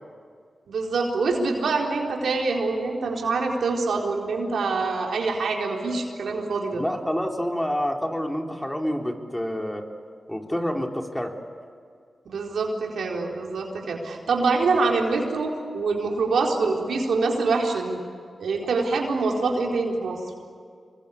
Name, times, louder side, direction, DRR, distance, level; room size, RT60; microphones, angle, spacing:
voice 1, 0.7-6.8 12.3-18.0 18.4-20.2, right 3 dB, 85° right, 1 dB, 4.1 m, -25 dB
voice 2, 6.7-9.8 10.3-11.3, equal, 10° left, 2 dB, 3.8 m, -28 dB
27.0 x 23.5 x 8.6 m, 2.2 s
cardioid pair, 45°, 0 cm